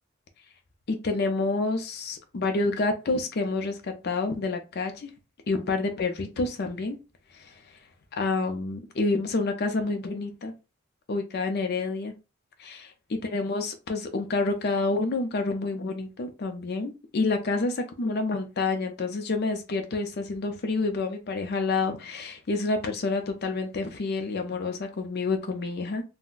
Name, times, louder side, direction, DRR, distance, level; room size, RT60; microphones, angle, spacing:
voice 1, 0.9-5.1 5.5-7.0 7.3-7.5 8.2-10.5 11.1-12.1 12.6-26.0, left 3 dB, 50° left, 0.5 m, -28 dB
3.8 x 2.1 x 2.4 m
head